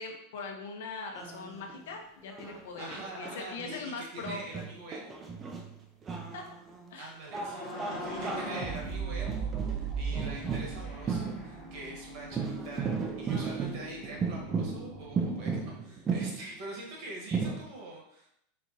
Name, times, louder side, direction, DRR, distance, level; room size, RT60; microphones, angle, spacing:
voice 1, 0.0-4.4 6.3-6.4 6.9-7.1, left 4 dB, 80° left, 2 dB, 0.9 m, -41 dB
sound 1, 1.2-1.8 2.2-6.9 7.3-11.9 12.3-16.6 17.3-17.6, right 5 dB, 15° right, 0.4 m, -35 dB
voice 2, 2.8-5.2 7.0-18.3, right 2 dB, 45° right, -1 dB, 1.2 m, -44 dB
sound 2, 7.3-12.1, right 5 dB, 20° left, 1.1 m, -37 dB
sound 3, 7.9-15.6, left 1 dB, 85° right, 1.1 m, -48 dB
4.4 x 3.8 x 2.7 m, 0.73 s
supercardioid pair, 175°, 0 cm